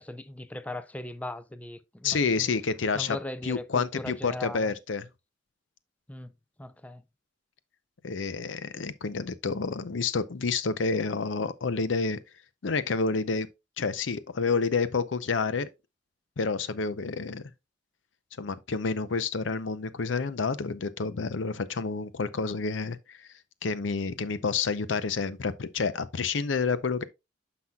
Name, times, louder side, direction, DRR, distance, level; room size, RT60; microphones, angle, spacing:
voice 1, 0.0-2.5 2.9-4.7 6.1-6.3 6.6-7.0, left 1 dB, 10° left, 0.4 m, -38 dB
voice 2, 2.0-3.2 3.4-5.1 8.0-12.2 12.6-13.5 13.8-15.7 16.4-17.4 18.4-23.2 23.6-27.0, left 4 dB, 90° left, 0.6 m, -29 dB
9.5 x 6.0 x 2.3 m
head